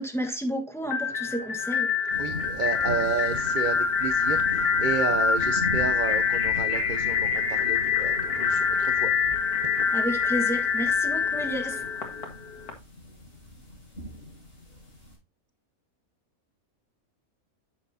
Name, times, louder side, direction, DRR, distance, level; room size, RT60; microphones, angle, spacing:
voice 1, 0.0-2.4 9.9-11.9, equal, ahead, 1.3 m, -32 dB
sound 1, 0.9-12.7, left 6 dB, 85° left, 2.2 m, -25 dB
sound 2, 2.1-15.2, left 1 dB, 60° left, 5.6 m, -40 dB
voice 2, 2.2-9.1 9.7-9.8, right 6 dB, 50° right, 0.6 m, -32 dB
10.0 x 7.4 x 2.8 m
omnidirectional pair, 1.5 m